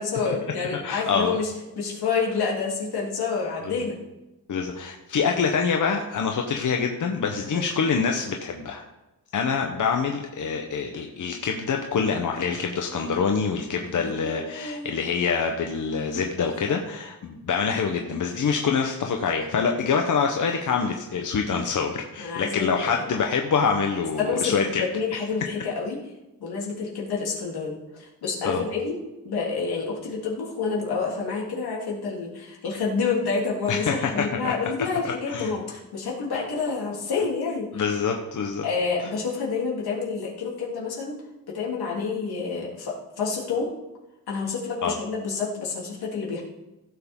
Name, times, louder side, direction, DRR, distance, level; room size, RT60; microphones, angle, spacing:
voice 1, 0.0-4.0 7.5-7.6 13.8-14.9 16.7-16.8 22.2-22.7 24.2-26.0 26.4-29.0 29.2-37.8 38.6-41.2 41.5-43.7 44.3-46.4, left 5 dB, 85° left, -3 dB, 3.2 m, -28 dB
voice 2, 0.8-1.3 3.6-3.8 4.5-8.8 9.3-24.8 28.4-28.7 33.7-34.5 35.0-35.5 37.7-38.6 44.8-44.9, left 5 dB, 55° left, 3 dB, 1.0 m, -25 dB
16.0 x 7.1 x 3.7 m, 1.0 s
wide cardioid pair, 130°, 37 cm